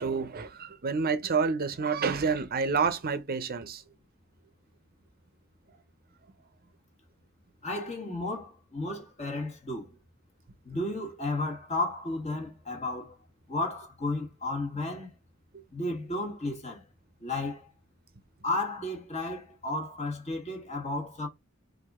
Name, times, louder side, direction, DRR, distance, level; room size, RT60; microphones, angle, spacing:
voice 1, 0.0-3.8 15.5-15.6, right 5 dB, 45° right, 0.6 m, -29 dB
voice 2, 7.6-10.0 10.6-13.2 13.5-15.1 15.7-16.8 17.2-17.7 18.4-21.3, left 2 dB, 30° left, 1.4 m, -33 dB
4.7 x 2.6 x 3.5 m
head